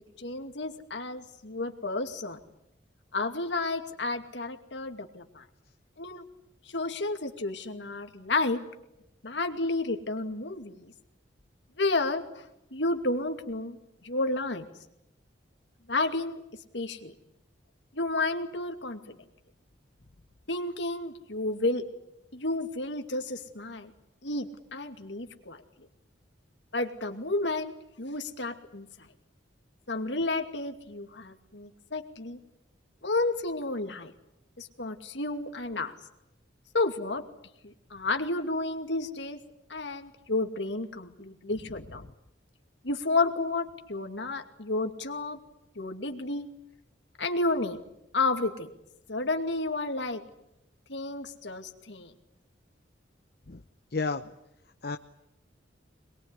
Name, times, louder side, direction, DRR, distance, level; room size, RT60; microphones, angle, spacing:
voice 1, 0.2-2.4 3.1-5.4 6.0-6.2 6.7-8.6 9.2-10.9 11.8-13.8 14.0-14.6 15.9-16.4 16.7-17.1 17.9-19.2 20.5-21.8 22.3-23.9 24.2-25.6 26.7-28.9 29.9-32.4 33.0-34.1 34.6-35.9 36.7-37.2 37.6-39.4 39.7-42.0 42.8-45.4 45.8-46.5 47.2-47.8 48.1-48.7 49.1-50.2 50.9-52.1, left 2 dB, 75° left, 6 dB, 2.5 m, -31 dB
voice 2, 53.9-54.2 54.8-55.0, left 3 dB, 55° left, 8 dB, 0.9 m, -30 dB
24.0 x 22.0 x 9.9 m, 0.84 s
head